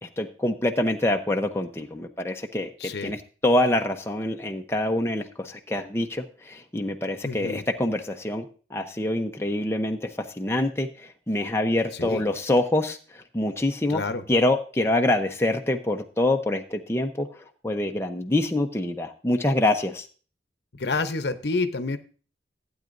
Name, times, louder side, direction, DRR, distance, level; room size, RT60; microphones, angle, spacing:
voice 1, 0.0-8.5 8.7-10.1 10.3-14.0 14.3-20.1, left 1 dB, 15° left, 3 dB, 0.8 m, -25 dB
voice 2, 2.8-3.1 7.2-7.6 11.9-12.2 13.9-14.2 20.7-22.0, left 3 dB, 70° left, 9 dB, 0.8 m, -28 dB
15.0 x 8.9 x 2.6 m, 0.38 s
head